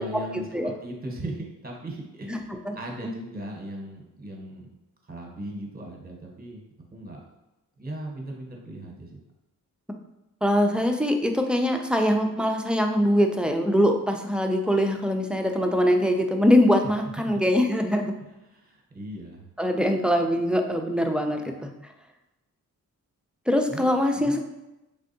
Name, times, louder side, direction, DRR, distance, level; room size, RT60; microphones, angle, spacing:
voice 1, 0.0-4.7 5.0-6.6 6.9-7.2 7.8-9.2 17.0-17.4 18.4-19.5 23.7-23.9 24.1-24.4, right 1 dB, 25° right, 0 dB, 0.9 m, -38 dB
voice 2, 10.4-18.1 19.6-21.7 23.5-24.4, equal, 5° right, 4 dB, 0.3 m, -23 dB
3.5 x 3.3 x 2.7 m, 0.95 s
cardioid pair, 75°, 36 cm